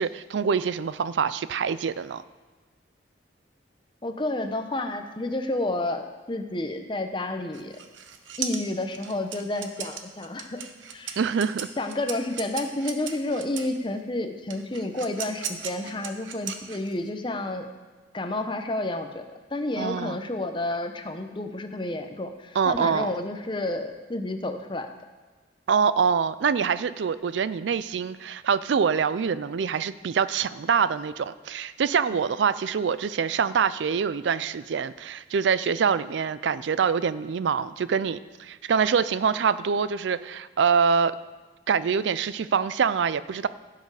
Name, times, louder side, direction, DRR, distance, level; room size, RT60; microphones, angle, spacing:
voice 1, 0.0-2.2 11.2-11.7 19.8-20.2 22.6-23.1 25.7-41.1 41.7-43.5, right 6 dB, 75° right, 16 dB, 0.4 m, -25 dB
voice 2, 4.0-7.8 8.4-10.6 10.9-11.2 11.8-17.7 18.1-19.2 19.5-24.9, left 2 dB, 25° left, 7 dB, 0.7 m, -30 dB
sound 1, 7.5-13.8 14.5-17.1, right 8 dB, 90° right, 0.9 m, -37 dB
16.5 x 6.7 x 4.8 m, 1.3 s
head